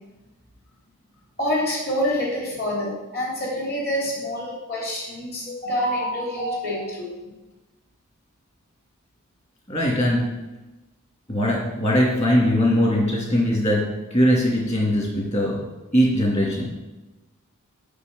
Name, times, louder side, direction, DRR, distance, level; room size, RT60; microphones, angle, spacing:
voice 1, 1.4-7.1, left 1 dB, 45° left, -3 dB, 3.5 m, -27 dB
voice 2, 5.5-6.5 9.7-10.2 11.3-13.8 14.1-15.6 15.9-16.8, equal, 30° left, -3 dB, 2.7 m, -21 dB
6.8 x 6.3 x 7.7 m, 1.1 s
head